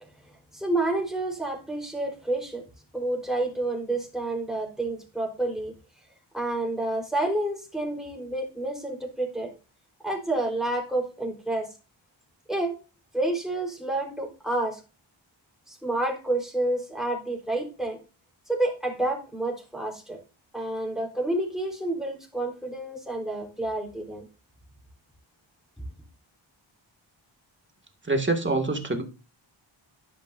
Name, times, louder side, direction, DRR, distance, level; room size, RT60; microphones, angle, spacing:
voice 1, 0.5-2.6 2.9-5.7 6.3-9.5 10.0-11.7 12.5-12.8 13.1-14.8 15.7-18.0 18.5-20.2 20.5-24.2, right 2 dB, ahead, 0 dB, 4.0 m, -29 dB
voice 2, 28.0-29.0, right 2 dB, 25° right, 4 dB, 2.1 m, -25 dB
11.0 x 10.5 x 2.6 m, 0.31 s
wide cardioid pair, 120°, 48 cm